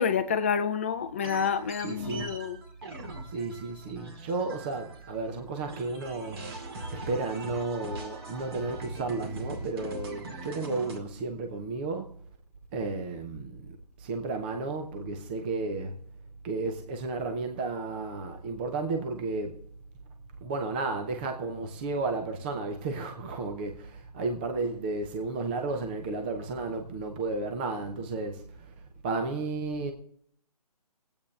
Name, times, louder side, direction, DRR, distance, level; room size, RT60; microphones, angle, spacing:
voice 1, 0.0-2.6, left 7 dB, 20° left, 0.5 m, -28 dB
sound 1, 1.2-5.3 5.6-11.0, right 2 dB, 40° right, 2.2 m, -41 dB
voice 2, 1.8-2.4 3.3-12.1 12.7-16.0 16.4-19.6 20.4-29.9, right 3 dB, 15° right, 0.7 m, -33 dB
19.0 x 8.7 x 3.2 m
hypercardioid pair, 165°, 20 cm